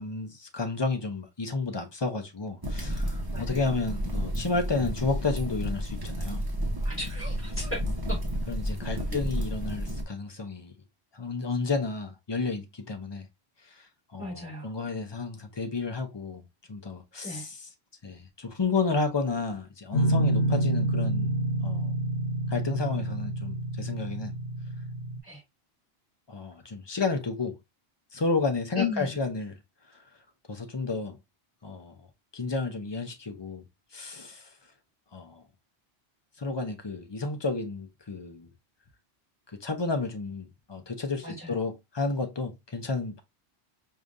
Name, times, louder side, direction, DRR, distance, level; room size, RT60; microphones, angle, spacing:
voice 1, 0.0-6.4 8.5-10.7 11.1-13.3 13.7-13.9 14.1-17.7 18.0-21.3 21.6-21.9 22.5-24.3 26.3-27.6 28.1-29.6 30.5-31.2 31.6-32.1 32.3-33.6 33.9-34.5 35.1-35.4 36.4-38.5 39.5-43.2, left 3 dB, 30° left, 0.6 m, -31 dB
sound 1, 2.6-10.0, equal, 20° right, 0.9 m, -31 dB
voice 2, 3.3-3.7 6.8-7.8 8.1-8.2 9.1-9.2 14.2-14.7 17.2-17.5 25.2-25.4 28.8-29.2 41.2-41.5, left 3 dB, 10° left, 2.5 m, -35 dB
Guitar, 19.9-25.2, right 1 dB, 85° left, 1.0 m, -28 dB
5.0 x 2.8 x 2.5 m
omnidirectional pair, 1.1 m